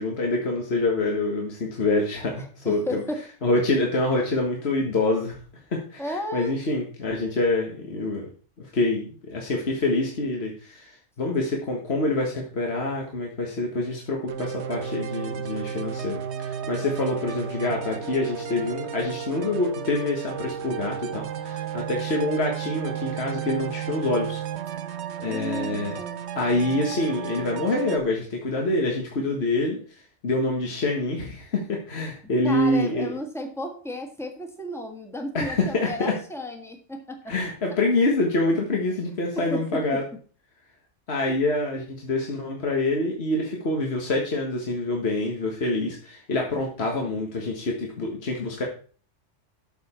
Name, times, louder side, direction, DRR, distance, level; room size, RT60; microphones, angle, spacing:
voice 1, 0.0-3.0 3.4-5.4 5.7-8.3 8.6-24.4 25.2-26.0 26.3-29.8 30.2-33.1 35.3-36.1 37.3-40.0 41.1-48.6, left 2 dB, 55° left, 0 dB, 1.8 m, -26 dB
voice 2, 2.4-3.2 3.5-3.6 6.0-6.6 25.2-26.3 32.4-37.3 39.5-40.0, left 1 dB, ahead, 3 dB, 1.7 m, -34 dB
sound 1, 14.3-28.0, right 8 dB, 65° right, 1.1 m, -33 dB
12.5 x 7.0 x 4.3 m, 0.41 s
omnidirectional pair, 1.3 m